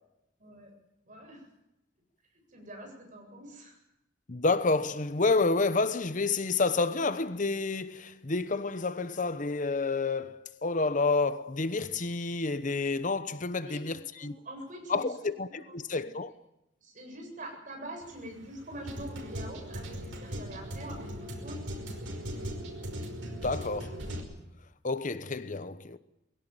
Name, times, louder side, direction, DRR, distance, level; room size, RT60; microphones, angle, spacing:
voice 1, 0.4-0.7 1.0-1.5 2.3-3.8 13.6-15.1 15.5-15.6 15.9-16.0 16.8-22.5, right 1 dB, 45° right, 7.7 m, -45 dB
voice 2, 4.3-14.3 14.9-16.3 23.2-24.1 24.8-26.0, left 3 dB, 45° left, 0.9 m, -29 dB
sound 1, 18.0-24.2, equal, 90° right, 5.4 m, -39 dB
22.0 x 17.0 x 9.3 m
head